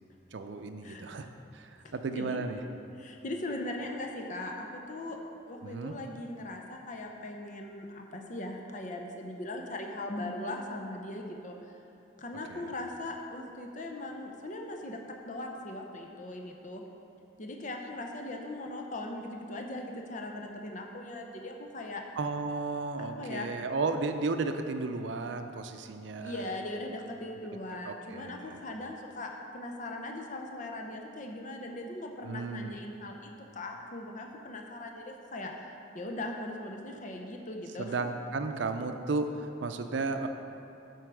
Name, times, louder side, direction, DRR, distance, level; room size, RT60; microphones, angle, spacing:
voice 1, 0.3-1.3 1.5-2.6 5.6-6.0 12.5-12.7 22.2-26.5 27.8-28.6 32.2-32.8 37.8-40.3, right 3 dB, 70° right, 7 dB, 0.5 m, -34 dB
voice 2, 1.8-2.4 3.0-5.2 5.5-11.7 12.2-15.0 15.3-16.8 17.4-22.0 23.0-23.5 26.2-35.5 35.9-37.9, left 1 dB, 40° left, 2 dB, 0.7 m, -39 dB
7.9 x 4.6 x 6.1 m, 2.9 s
head